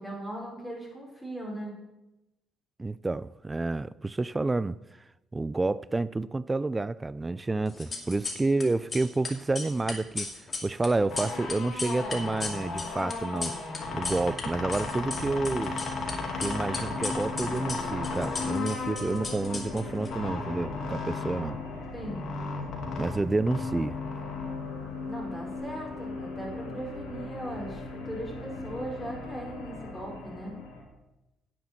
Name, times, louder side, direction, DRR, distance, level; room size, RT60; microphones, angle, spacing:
voice 1, 0.0-1.7 21.9-22.3 25.1-30.6, right 1 dB, ahead, 4.8 m, -39 dB
voice 2, 2.8-4.8 5.3-10.3 10.6-13.6 13.9-15.8 16.3-21.6 23.0-24.0, right 3 dB, 20° right, 0.4 m, -29 dB
sound 1, 7.7-8.6 8.9-14.4 14.7-16.1 16.4-20.1, left 3 dB, 35° left, 2.5 m, -36 dB
sound 2, 11.1-25.6, left 3 dB, 65° left, 2.5 m, -36 dB
sound 3, 13.8-30.8, left 3 dB, 90° left, 3.4 m, -40 dB
10.5 x 7.3 x 7.5 m
supercardioid pair, 70°, 0 cm